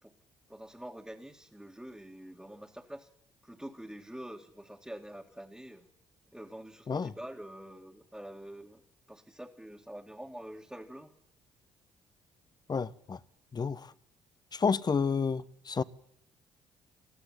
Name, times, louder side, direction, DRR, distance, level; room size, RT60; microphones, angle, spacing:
voice 1, 0.5-3.1 3.4-5.9 6.3-8.8 9.1-11.1, right 1 dB, 5° right, 2.1 m, -46 dB
voice 2, 12.7-13.2 13.5-13.9 14.5-15.8, left 5 dB, 35° left, 0.9 m, -30 dB
20.0 x 13.5 x 9.8 m
supercardioid pair, 65°, 12 cm